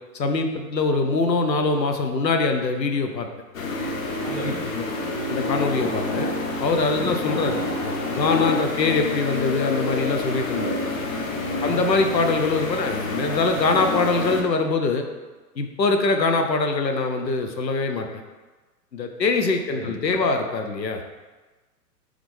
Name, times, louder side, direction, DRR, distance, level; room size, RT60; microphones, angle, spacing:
voice 1, 0.1-3.3 4.7-4.9 5.3-6.3 6.6-7.6 8.1-10.8 11.6-15.1 15.6-18.2 18.9-21.0, left 3 dB, 90° left, 5 dB, 0.6 m, -23 dB
sound 1, 3.5-14.4, left 2 dB, 55° left, 0.7 m, -28 dB
voice 2, 4.2-4.7 6.9-7.2 11.5-11.9 19.7-20.2, equal, ahead, -7 dB, 0.7 m, -34 dB
3.5 x 3.2 x 3.6 m, 1.2 s
figure-of-eight pair, 115°, 49 cm